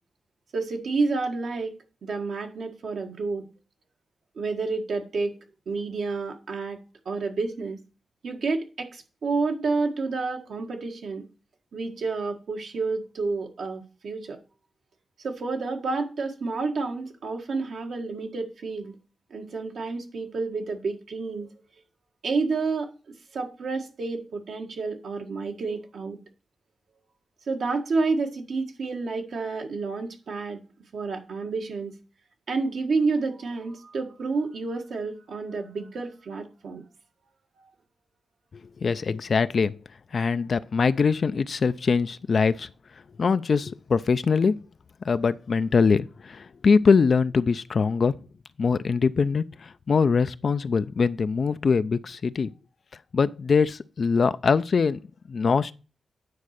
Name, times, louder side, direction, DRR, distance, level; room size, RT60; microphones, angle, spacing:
voice 1, 0.5-3.4 4.3-5.4 5.7-6.8 7.0-7.8 8.2-11.2 11.7-14.4 15.2-19.0 19.3-21.5 22.2-22.9 23.3-26.2 27.5-30.6 30.9-31.9 32.5-36.8, right 4 dB, 75° right, 1.6 m, -29 dB
voice 2, 38.8-39.8 40.1-42.7 43.2-44.6 45.0-48.2 48.6-52.5 53.1-55.0 55.3-55.7, left 5 dB, 55° left, 0.4 m, -23 dB
9.5 x 4.2 x 6.5 m
cardioid pair, 90°, 0 cm